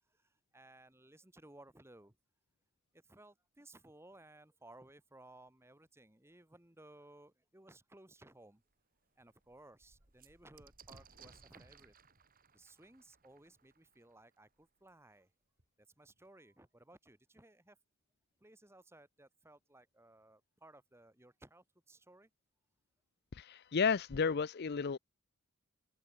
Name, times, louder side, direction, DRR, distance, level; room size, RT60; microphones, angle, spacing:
voice 1, 0.1-2.2 2.9-8.6 9.2-11.9 12.5-15.3 16.0-17.8 18.4-22.3, right 1 dB, 10° right, 1.8 m, -60 dB
sound 1, 8.2-8.3 8.7-8.8 9.1-14.6 15.6-15.7 15.9-16.6, right 5 dB, 40° right, 3.1 m, -62 dB
voice 2, 23.3-25.0, left 5 dB, 45° left, 0.5 m, -32 dB
open air
head